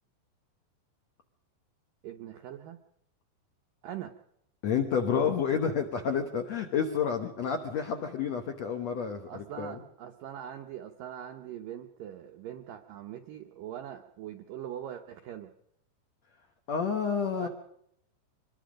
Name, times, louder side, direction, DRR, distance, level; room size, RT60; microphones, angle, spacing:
voice 1, 2.0-2.8 3.8-4.1 9.3-15.5 17.4-17.5, right 10 dB, 80° right, 4 dB, 2.0 m, -42 dB
voice 2, 4.6-9.8 16.7-17.5, left 6 dB, 75° left, 5 dB, 1.6 m, -29 dB
24.5 x 21.0 x 5.1 m, 0.73 s
omnidirectional pair, 5.1 m